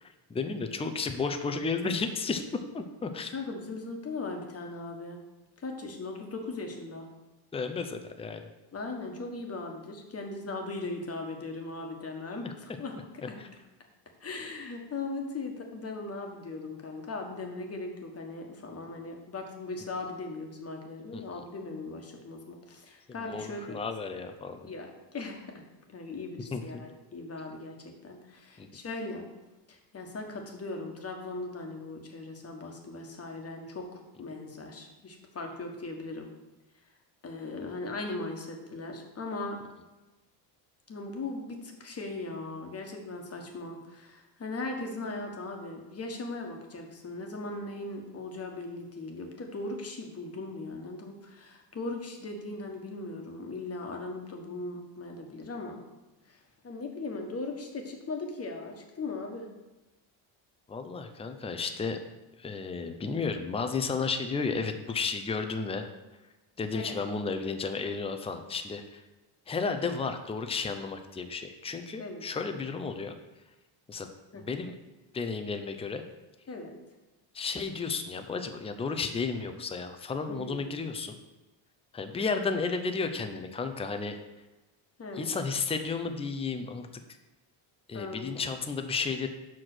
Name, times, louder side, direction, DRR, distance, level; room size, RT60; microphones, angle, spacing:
voice 1, 0.0-3.3 7.5-8.4 12.4-12.5 13.4-13.5 21.1-21.4 23.2-24.6 26.5-26.6 28.6-28.7 60.7-62.0 62.4-65.9 66.6-69.0 69.5-73.1 73.9-74.1 74.3-74.7 75.1-76.0 77.3-81.2 81.9-84.2 85.2-86.9 87.9-89.3, left 4 dB, 10° left, 7 dB, 0.5 m, -33 dB
voice 2, 3.3-5.2 5.6-7.1 8.7-12.9 13.3-13.4 14.2-23.8 24.6-25.5 25.9-29.3 29.7-36.3 37.2-39.6 40.9-55.8 56.2-59.5 66.7-67.0 72.0-72.2 74.3-74.4 76.5-76.8 80.3-80.7 85.0-85.4 87.9-88.4, left 3 dB, 30° left, 2 dB, 1.4 m, -39 dB
5.9 x 5.0 x 6.0 m, 1.1 s
cardioid pair, 105°, 48 cm